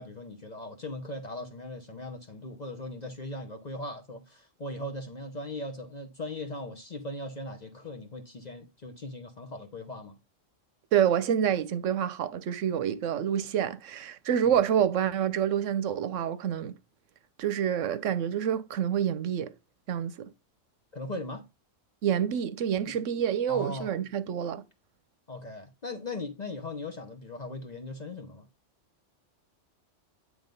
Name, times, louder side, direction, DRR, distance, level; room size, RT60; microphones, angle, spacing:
voice 1, 0.0-10.2 20.9-21.4 22.8-23.0 23.5-23.9 25.3-28.4, left 2 dB, 40° left, 0.9 m, -39 dB
voice 2, 10.9-16.8 17.4-19.5 19.9-20.3 22.0-24.6, right 9 dB, 80° right, 1.0 m, -27 dB
9.4 x 3.2 x 5.2 m
omnidirectional pair, 1.3 m